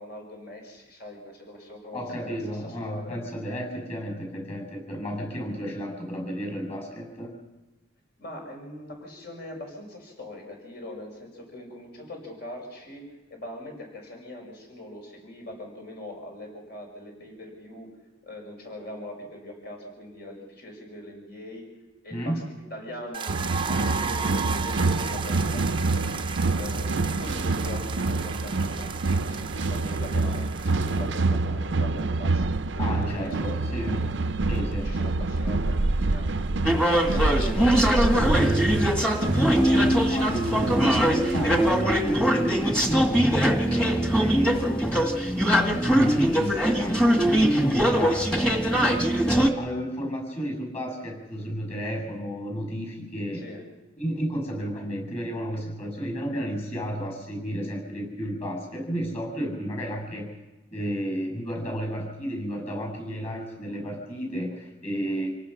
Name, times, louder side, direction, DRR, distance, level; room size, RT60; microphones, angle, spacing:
voice 1, 0.0-2.4 2.6-3.2 8.2-13.0 13.3-17.9 18.2-21.6 22.0-22.4 22.7-23.3 23.7-25.6 25.9-26.0 26.5-32.4 32.7-34.0 34.8-36.5 36.9-40.0 53.3-53.6, left 1 dB, 55° left, 1 dB, 5.8 m, -41 dB
voice 2, 1.9-7.3 22.1-22.5 32.8-34.0 34.5-34.9 40.1-43.2 43.7-53.4 54.0-60.3 60.7-65.3, equal, 30° left, 3 dB, 7.8 m, -32 dB
sound 1, 23.1-31.3, right 6 dB, 25° right, 0.7 m, -35 dB
sound 2, 23.3-41.8, right 3 dB, 70° right, 0.6 m, -27 dB
sound 3, 36.7-49.5, equal, 5° left, 1.8 m, -22 dB
27.5 x 18.5 x 6.0 m, 1.1 s
head